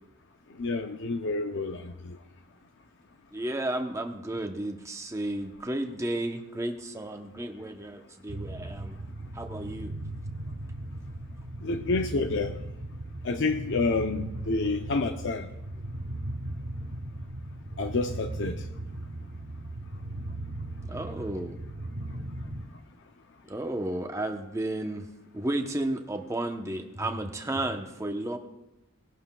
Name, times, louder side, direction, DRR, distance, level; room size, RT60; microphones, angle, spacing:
voice 1, 0.6-2.2 11.6-12.5 13.2-15.5 17.8-18.7, left 3 dB, 55° left, 6 dB, 0.6 m, -29 dB
voice 2, 3.3-8.9 9.3-9.9 20.9-21.6 23.4-25.0 25.3-28.4, right 1 dB, 15° right, 4 dB, 0.8 m, -33 dB
sound 1, 8.3-22.7, right 1 dB, 55° right, 0.9 m, -38 dB
18.5 x 11.5 x 2.3 m, 0.92 s
head